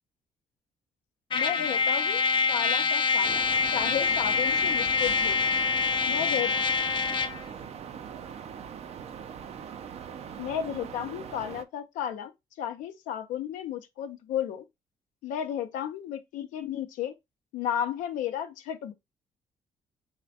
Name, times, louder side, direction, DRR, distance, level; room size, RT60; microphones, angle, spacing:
voice 1, 1.3-2.2 2.5-3.4 3.7-5.5 6.1-6.5 10.4-12.3 12.6-14.6 15.2-17.1 17.5-18.9, left 9 dB, 90° left, 0.5 m, -33 dB
Trumpet, 1.3-7.4, left 5 dB, 40° left, 0.4 m, -26 dB
sound 1, 3.2-11.6, right 7 dB, 55° right, 0.4 m, -41 dB
3.2 x 2.1 x 4.0 m
supercardioid pair, 70°, 13 cm